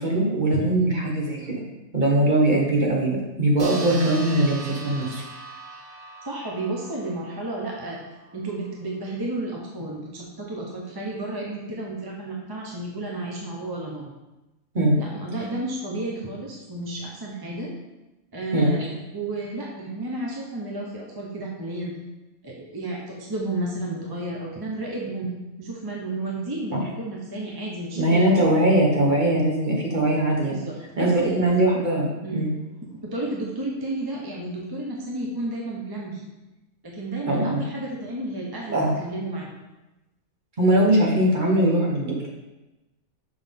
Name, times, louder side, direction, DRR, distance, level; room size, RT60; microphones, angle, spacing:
voice 1, 0.0-1.6 1.9-5.2 14.7-15.0 18.5-18.7 26.7-26.8 27.9-30.6 31.0-32.5 37.3-37.6 38.7-38.9 40.6-42.3, right 1 dB, 35° right, -3 dB, 1.4 m, -21 dB
sound 1, 3.6-8.5, right 3 dB, 85° right, 1.5 m, -40 dB
voice 2, 6.2-8.0 8.3-14.1 15.0-17.7 18.3-21.9 22.4-25.3 25.6-28.5 30.5-31.3 32.2-32.5 33.0-36.2 36.8-39.5, right 2 dB, 20° right, -2 dB, 0.7 m, -32 dB
5.9 x 5.8 x 3.6 m, 1.1 s
omnidirectional pair, 1.4 m